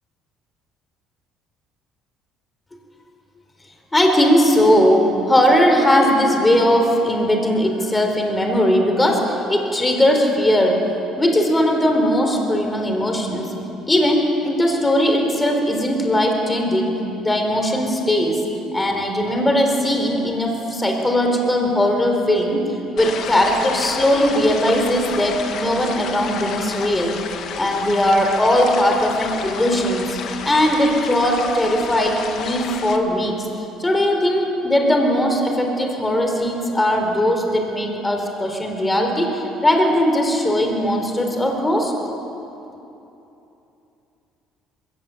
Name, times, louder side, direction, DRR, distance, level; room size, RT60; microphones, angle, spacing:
voice 1, 3.9-10.8 11.2-13.5 13.9-18.4 18.7-22.6 22.9-27.1 27.5-30.2 30.4-33.3 33.8-41.9, equal, 15° left, 2 dB, 4.3 m, -19 dB
sound 1, 23.0-33.0, left 7 dB, 60° left, 1.8 m, -31 dB
21.5 x 17.5 x 8.0 m, 2.9 s
supercardioid pair, 90°, 0 cm